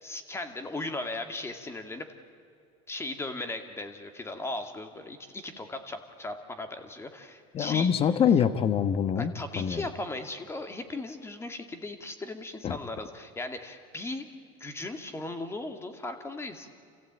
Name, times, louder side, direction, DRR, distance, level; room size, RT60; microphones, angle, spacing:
voice 1, 0.0-2.1 2.9-7.9 9.2-14.3 14.6-16.7, left 2 dB, 15° left, 7 dB, 2.2 m, -37 dB
voice 2, 7.5-9.8 12.6-12.8, left 8 dB, 35° left, 13 dB, 1.1 m, -25 dB
28.5 x 15.5 x 8.9 m, 2.4 s
supercardioid pair, 120°, 16 cm